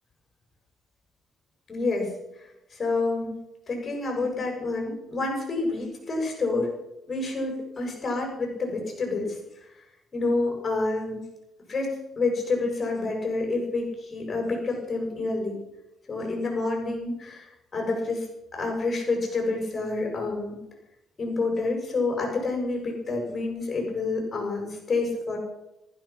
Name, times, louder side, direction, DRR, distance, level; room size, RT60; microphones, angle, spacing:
voice 1, 1.7-2.1 2.7-3.4 3.7-6.7 7.1-9.4 10.1-11.2 11.7-15.6 16.1-18.3 18.5-20.6 21.2-25.4, left 3 dB, 35° left, 1 dB, 7.3 m, -28 dB
15.0 x 14.5 x 6.0 m, 0.90 s
cardioid pair, 90°, 0 cm